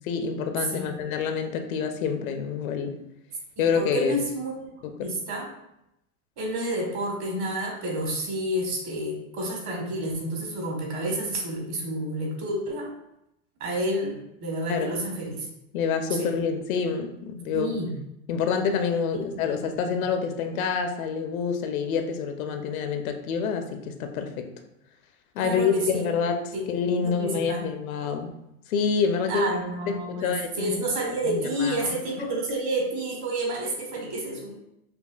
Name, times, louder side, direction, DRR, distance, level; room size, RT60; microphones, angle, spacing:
voice 1, 0.1-2.9 3.6-4.2 4.8-5.1 14.7-15.0 15.7-17.7 18.3-24.5 25.4-28.3 28.7-29.5 29.9-30.8 31.2-32.0, left 6 dB, 80° left, 6 dB, 0.6 m, -27 dB
voice 2, 0.7-1.0 3.6-4.6 5.0-5.5 6.4-12.9 13.6-15.5 16.1-16.3 17.5-17.9 19.1-19.2 19.8-20.0 25.4-26.1 26.5-26.6 27.0-27.6 29.3-34.5, right 1 dB, 40° right, 0 dB, 1.3 m, -30 dB
5.2 x 2.4 x 2.3 m, 0.83 s
supercardioid pair, 115°, 41 cm